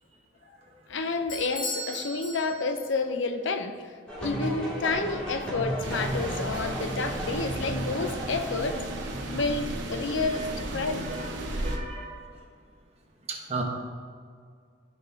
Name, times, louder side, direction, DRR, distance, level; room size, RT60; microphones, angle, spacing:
voice 1, 0.9-3.8 4.2-8.9 9.3-10.5 10.7-11.1, left 3 dB, 70° left, 8 dB, 0.6 m, -30 dB
Bell / Doorbell, 1.3-3.0, equal, 45° left, 2.2 m, -37 dB
sound 1, 4.1-9.2, equal, 5° left, 2.2 m, -34 dB
sound 2, 5.8-11.8, right 1 dB, 70° right, 1.0 m, -34 dB
voice 2, 11.6-12.1 13.3-13.6, right 3 dB, 35° right, 0 dB, 1.1 m, -33 dB
14.0 x 5.9 x 2.8 m, 2.1 s
head